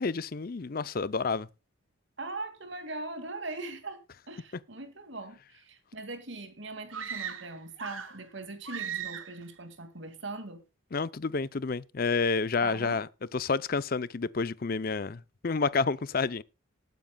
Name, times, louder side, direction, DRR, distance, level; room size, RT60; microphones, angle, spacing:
voice 1, 0.0-1.5 10.9-13.1 13.3-16.4, left 4 dB, 45° left, 0.6 m, -29 dB
voice 2, 2.2-4.0 4.3-10.6 12.6-13.0, right 2 dB, 70° right, 2.3 m, -40 dB
sound 1, 6.9-8.3 8.6-9.4, right 8 dB, 90° right, 1.7 m, -38 dB
19.5 x 9.2 x 2.3 m
head